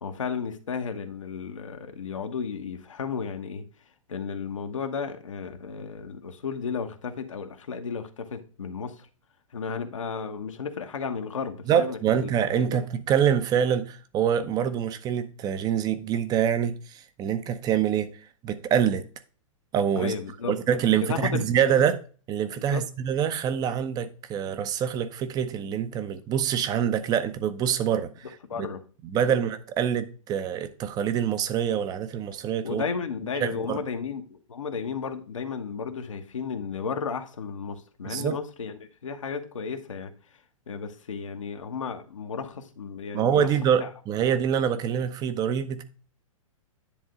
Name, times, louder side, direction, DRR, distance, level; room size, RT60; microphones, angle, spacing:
voice 1, 0.0-3.6 4.1-9.1 9.5-12.8 20.0-20.5 20.9-21.5 22.5-22.8 28.5-28.8 29.1-29.4 32.6-40.1 40.7-43.5 43.8-43.9, left 5 dB, 70° left, 1.2 m, -33 dB
voice 2, 11.7-18.1 18.4-19.0 19.7-20.1 20.5-22.0 22.3-28.1 29.1-32.8 33.4-33.8 38.0-38.4 43.1-45.8, right 8 dB, 20° right, 0.8 m, -25 dB
10.0 x 3.7 x 5.0 m
figure-of-eight pair, 110°, 17 cm